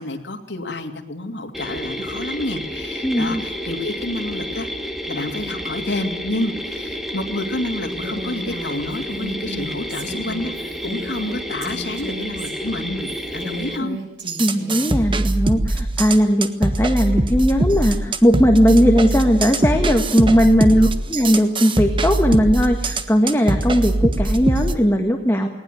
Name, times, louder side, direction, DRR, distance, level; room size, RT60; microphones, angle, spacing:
voice 1, 0.0-4.7 5.1-14.0 20.7-20.9, left 2 dB, 85° left, 3 dB, 2.8 m, -29 dB
sound 1, 1.5-13.8, equal, ahead, 2.1 m, -30 dB
voice 2, 3.0-3.4 14.4-25.5, equal, 15° left, 4 dB, 1.7 m, -18 dB
Female speech woman speaking, 7.9-14.9, right 1 dB, 85° right, 7.5 m, -35 dB
sound 2, 14.3-24.7, right 1 dB, 30° right, 1.4 m, -22 dB
19.5 x 19.0 x 9.4 m, 0.82 s
head